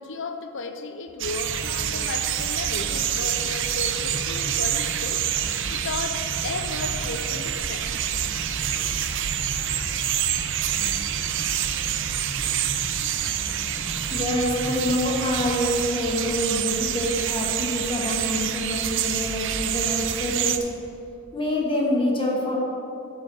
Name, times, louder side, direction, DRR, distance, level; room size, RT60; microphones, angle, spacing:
voice 1, 0.0-5.2 5.7-8.1, left 3 dB, 60° left, 7 dB, 0.6 m, -34 dB
sound 1, 1.2-20.6, right 10 dB, 60° right, 0.6 m, -27 dB
sound 2, 1.5-15.7, right 1 dB, 30° right, 0.8 m, -38 dB
voice 2, 14.1-20.6 21.3-22.6, left 1 dB, 25° left, -2 dB, 1.6 m, -26 dB
12.0 x 4.9 x 7.1 m, 2.8 s
head